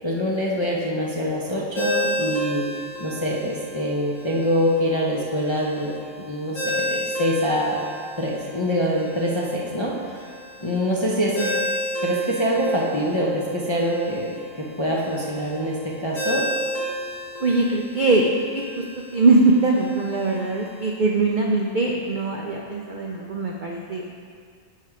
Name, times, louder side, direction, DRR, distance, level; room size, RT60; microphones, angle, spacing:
voice 1, 0.0-2.6 3.0-5.9 6.3-7.8 8.2-9.9 10.6-11.5 12.0-14.3 14.8-16.4, equal, 30° left, -5 dB, 0.5 m, -24 dB
Ringtone, 1.8-20.9, equal, 70° left, 1.4 m, -32 dB
voice 2, 17.4-18.8 19.1-24.1, right 3 dB, 60° right, -1 dB, 0.5 m, -21 dB
9.2 x 3.3 x 4.8 m, 2.1 s
omnidirectional pair, 1.4 m